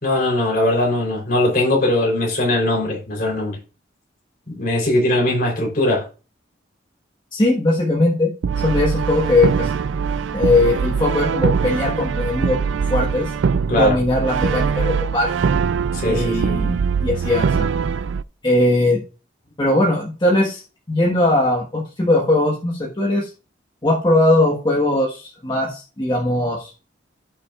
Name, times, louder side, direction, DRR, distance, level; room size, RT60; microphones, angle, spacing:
voice 1, 0.0-3.6 4.5-6.1 13.7-14.0 15.9-16.6, left 1 dB, 50° left, 3.6 m, -20 dB
voice 2, 7.3-8.3 8.6-9.7 10.3-12.6 12.9-13.3 13.7-15.3 16.0-17.7 18.4-19.0 19.6-20.6 20.9-23.3 23.8-26.7, left 2 dB, 25° left, 1.4 m, -19 dB
Brass instrument, 8.4-18.2, right 6 dB, 80° right, 0.4 m, -22 dB
16.0 x 5.9 x 2.4 m
head